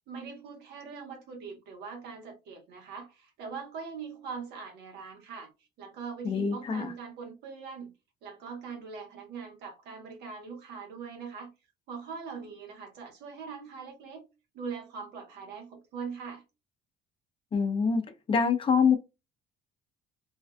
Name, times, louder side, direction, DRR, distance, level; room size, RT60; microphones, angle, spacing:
voice 1, 0.1-5.5 5.8-7.9 8.2-11.5 11.9-14.3 14.5-16.4, right 5 dB, 80° right, 1.0 m, -42 dB
voice 2, 6.2-6.9 17.5-18.0 18.3-19.0, left 6 dB, 30° left, 0.5 m, -25 dB
2.5 x 2.3 x 2.2 m
cardioid pair, 110°, 17 cm